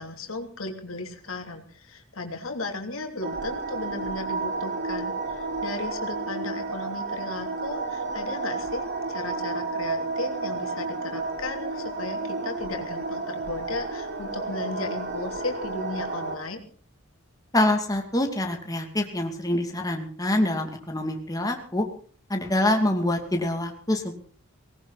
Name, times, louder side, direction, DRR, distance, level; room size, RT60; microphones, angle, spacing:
voice 1, 0.0-16.6, left 2 dB, 80° left, 4 dB, 3.1 m, -35 dB
sound 1, 3.2-16.4, right 3 dB, 55° right, 3.5 m, -31 dB
voice 2, 17.5-21.8 22.3-24.1, left 1 dB, 15° left, 3 dB, 2.5 m, -25 dB
18.5 x 18.5 x 4.1 m, 0.43 s
head